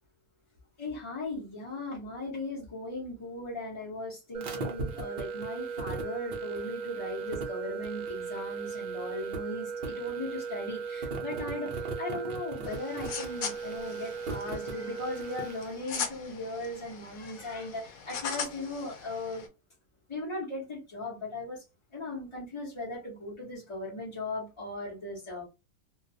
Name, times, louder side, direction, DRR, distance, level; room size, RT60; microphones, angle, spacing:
voice 1, 0.8-19.5 20.1-21.6 21.9-25.4, left 2 dB, 30° left, 0.5 m, -38 dB
sound 1, 4.3-15.7, right 5 dB, 80° right, 0.4 m, -36 dB
sound 2, 12.6-19.5, left 6 dB, 70° left, 1.0 m, -40 dB
2.3 x 2.3 x 2.6 m
omnidirectional pair, 1.6 m